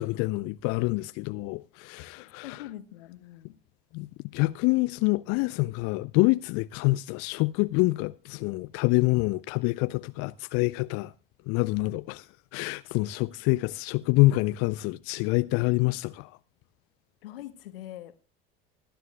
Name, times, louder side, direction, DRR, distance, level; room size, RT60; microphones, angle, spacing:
voice 1, 0.0-2.6 3.9-11.1 11.5-16.3, left 22 dB, 55° left, 0.5 m, -26 dB
voice 2, 2.2-3.5 14.3-14.4 17.2-18.2, left 13 dB, 75° left, 1.1 m, -43 dB
24.0 x 10.0 x 2.2 m
figure-of-eight pair, 65°, 29 cm